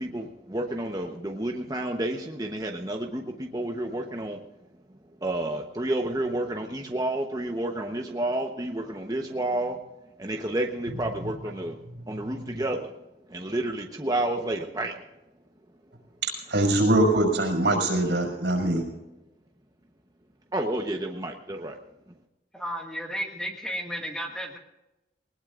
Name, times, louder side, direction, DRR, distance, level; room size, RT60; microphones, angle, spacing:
voice 1, 0.0-4.4 5.2-9.8 10.2-11.8 12.1-12.9 13.3-15.0 20.5-21.8, right 1 dB, 20° right, 2 dB, 1.0 m, -30 dB
voice 2, 16.2-18.9, right 1 dB, 85° right, 2 dB, 5.6 m, -23 dB
voice 3, 22.5-24.6, equal, 5° left, 1 dB, 1.9 m, -33 dB
20.5 x 20.0 x 2.5 m, 0.98 s
head